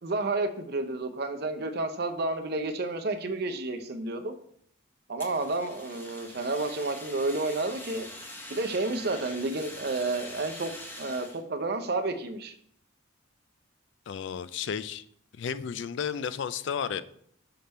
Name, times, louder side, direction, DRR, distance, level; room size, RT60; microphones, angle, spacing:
voice 1, 0.0-4.3 5.1-8.1 8.5-10.7 11.0-12.5, right 2 dB, 50° right, 7 dB, 0.6 m, -30 dB
Fire, 5.2-11.4, left 1 dB, 10° left, 0.7 m, -44 dB
voice 2, 14.1-15.0 15.4-17.0, left 7 dB, 60° left, 14 dB, 0.3 m, -33 dB
5.8 x 3.4 x 5.3 m, 0.65 s
head